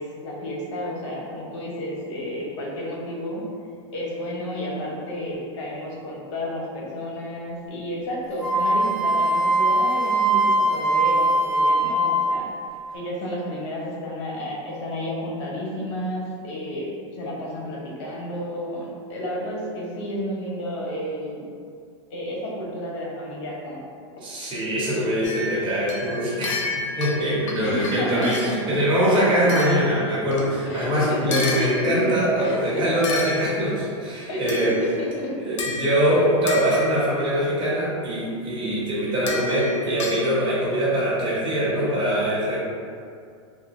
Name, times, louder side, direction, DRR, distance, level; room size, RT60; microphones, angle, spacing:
voice 1, 0.0-3.4 3.9-12.5 12.9-21.5 22.1-23.8 27.6-28.7 30.7-31.9 32.4-33.2 34.3-35.5 39.7-39.9, equal, 65° left, -4 dB, 0.8 m, -31 dB
Wind instrument woodwind instrument, 8.4-12.5, right 1 dB, 5° left, 0.5 m, -21 dB
voice 2, 24.2-26.6 27.0-34.7 35.4-42.6, equal, 30° right, -8 dB, 1.1 m, -23 dB
sound 1, 25.2-28.7 29.5-30.6 31.3-32.2 33.0-33.9 34.5-35.1 35.6-37.2 39.3-40.2, left 3 dB, 85° left, 0.5 m, -32 dB
2.7 x 2.1 x 3.1 m, 2.3 s
hypercardioid pair, 115°, 16 cm